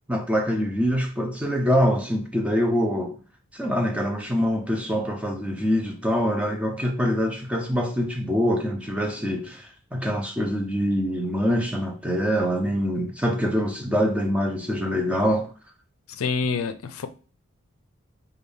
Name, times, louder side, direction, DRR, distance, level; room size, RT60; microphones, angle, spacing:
voice 1, 0.1-3.2 3.5-15.5, equal, 5° right, 0.3 m, -24 dB
voice 2, 16.1-17.1, left 5 dB, 80° left, 0.4 m, -27 dB
3.4 x 2.2 x 3.4 m
head